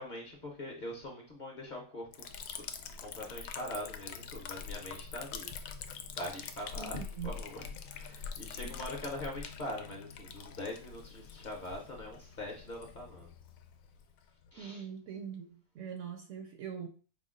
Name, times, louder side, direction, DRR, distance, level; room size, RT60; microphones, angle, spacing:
voice 1, 0.0-5.5 6.1-13.3 14.5-14.8, left 1 dB, 40° left, 0.7 m, -43 dB
Liquid, 2.1-14.6, left 6 dB, 70° left, 0.9 m, -45 dB
voice 2, 6.8-7.3 8.6-8.8 14.6-16.9, right 7 dB, 70° right, 0.8 m, -42 dB
5.0 x 2.2 x 3.7 m
omnidirectional pair, 1.6 m